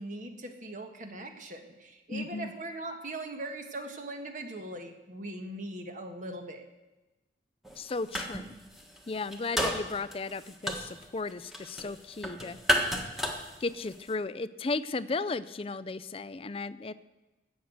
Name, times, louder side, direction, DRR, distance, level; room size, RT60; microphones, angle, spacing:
voice 1, 0.0-6.7, right 1 dB, 45° right, 5 dB, 1.6 m, -40 dB
voice 2, 2.1-2.5 7.8-8.6 9.1-12.6 13.6-16.9, left 3 dB, 30° left, 15 dB, 0.4 m, -35 dB
sound 1, 7.6-8.5 8.7-14.1, equal, ahead, 1.5 m, -32 dB
16.0 x 6.5 x 8.0 m, 1.1 s
head